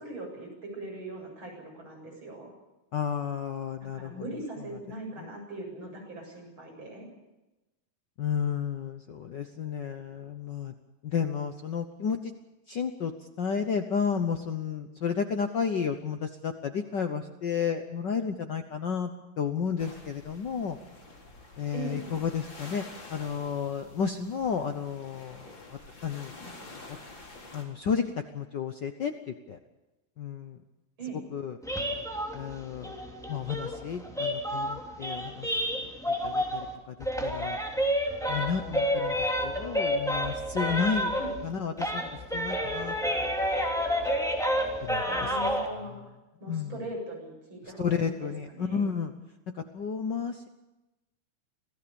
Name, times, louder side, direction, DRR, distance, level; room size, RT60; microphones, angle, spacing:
voice 1, 0.0-2.5 3.9-7.1 21.7-22.1 31.0-31.2 41.1-41.3 45.0-46.0 46.4-48.9, right 2 dB, 40° right, 0 dB, 8.6 m, -40 dB
voice 2, 2.9-4.1 5.2-5.3 8.2-10.7 11.0-12.3 12.7-13.1 13.4-19.1 19.4-20.8 21.6-22.8 23.1-25.5 26.0-26.3 26.9-27.0 27.5-28.1 28.3-29.6 30.2-30.6 31.3-31.6 32.3-32.9 33.3-35.5 35.7-35.8 36.2-36.9 37.2-37.6 38.3-39.1 39.4-41.1 41.4-43.3 44.8-45.0 46.5-46.7 47.8-49.1 49.7-50.5, left 6 dB, 85° left, 7 dB, 0.9 m, -32 dB
sound 1, 19.8-27.6, left 2 dB, 35° left, 4.5 m, -48 dB
sound 2, 31.6-36.7 37.0-41.5 41.8-45.7, equal, ahead, 2.9 m, -30 dB
26.5 x 17.0 x 7.0 m, 1.0 s
omnidirectional pair, 3.5 m